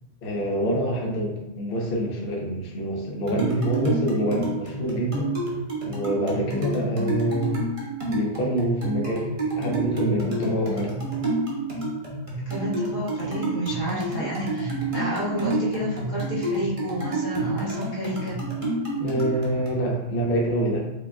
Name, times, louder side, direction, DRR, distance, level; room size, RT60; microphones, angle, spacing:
voice 1, 0.2-5.3 5.8-7.6 8.1-9.3 9.5-10.9 19.0-20.8, right 1 dB, 50° left, -1 dB, 0.8 m, -26 dB
sound 1, 3.3-19.8, right 2 dB, 30° right, 0.9 m, -29 dB
voice 2, 12.5-18.4, equal, 70° left, -7 dB, 1.9 m, -30 dB
5.0 x 2.2 x 3.5 m, 0.95 s
omnidirectional pair, 1.5 m